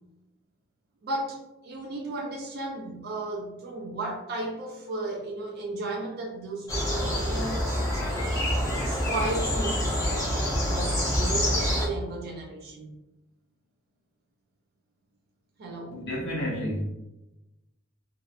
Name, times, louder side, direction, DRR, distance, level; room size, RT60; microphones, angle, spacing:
voice 1, 1.0-12.9 15.6-16.0, right 2 dB, 50° right, -1 dB, 0.4 m, -35 dB
sound 1, 6.7-11.9, equal, 15° left, 0.7 m, -27 dB
voice 2, 15.9-16.9, equal, 55° left, -6 dB, 0.5 m, -30 dB
2.6 x 2.0 x 2.4 m, 0.94 s
head